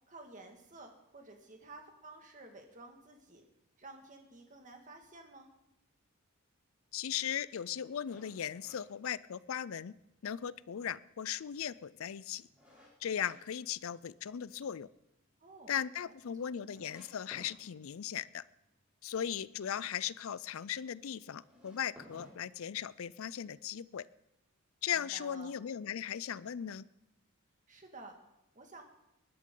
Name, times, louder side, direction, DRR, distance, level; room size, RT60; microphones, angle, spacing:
voice 1, 0.1-3.4 3.8-5.5 15.4-15.8 16.4-16.7 25.0-25.6 27.7-28.2 28.5-28.8, right 2 dB, 35° right, 3 dB, 2.0 m, -52 dB
voice 2, 6.9-9.9 10.2-12.5 13.0-14.9 15.7-18.4 19.0-24.0 24.8-26.8, left 9 dB, 65° left, 19 dB, 0.4 m, -38 dB
sound 1, 8.0-9.8 10.2-10.3 10.8-13.4 13.7-14.5 14.8-14.9 15.3-15.4 15.6-15.7 16.3-16.4 16.8-17.5 21.3-23.1, equal, 5° right, 5.3 m, -58 dB
20.0 x 11.0 x 3.9 m, 0.88 s
head